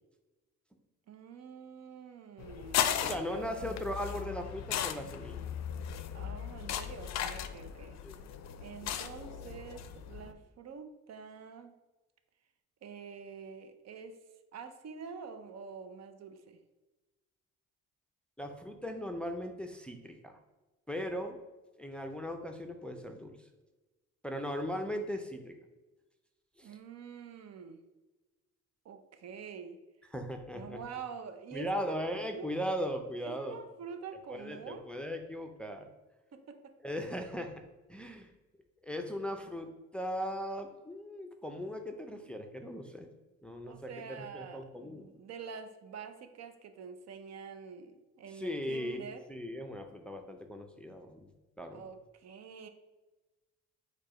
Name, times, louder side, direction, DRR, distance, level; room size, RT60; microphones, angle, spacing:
voice 1, 1.1-3.8 6.1-8.0 8.6-11.7 12.8-14.2 14.5-16.6 26.6-27.8 28.8-29.8 30.5-32.0 32.3-32.5 33.2-34.9 36.3-36.7 43.7-49.2 51.7-52.7, right 6 dB, 60° right, 8 dB, 0.6 m, -47 dB
sound 1, 2.4-10.3, left 9 dB, 60° left, 0.4 m, -37 dB
voice 2, 3.0-5.4 8.0-8.2 18.4-20.4 20.9-21.4 21.8-23.3 24.2-25.5 26.6-26.8 30.1-30.8 31.5-33.6 34.3-35.9 36.8-37.5 37.9-38.3 38.8-43.1 43.4-45.1 48.3-51.3 51.6-51.8, equal, 5° left, 4 dB, 0.5 m, -38 dB
4.7 x 2.3 x 4.7 m, 1.1 s
cardioid pair, 90°, 30 cm